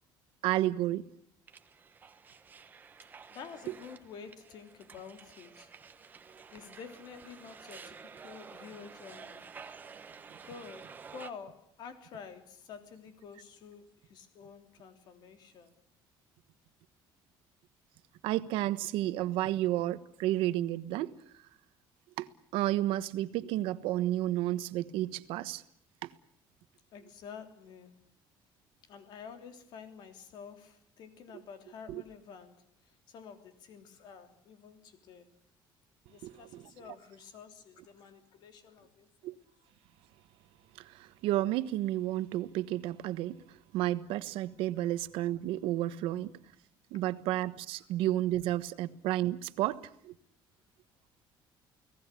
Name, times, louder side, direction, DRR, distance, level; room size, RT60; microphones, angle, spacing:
voice 1, 0.4-1.0 18.2-21.2 22.2-25.6 26.0-26.1 31.9-32.0 36.2-36.7 39.2-39.3 40.8-46.4 46.9-50.1, right 14 dB, 80° right, 1.3 m, -32 dB
sound 1, 1.5-11.3, right 5 dB, 20° right, 1.3 m, -51 dB
voice 2, 3.3-5.7 6.5-9.5 10.4-15.7 26.9-28.0 28.9-35.3 36.1-39.1, left 6 dB, 55° left, 3.3 m, -49 dB
30.0 x 18.5 x 8.4 m
cardioid pair, 180°, 9 cm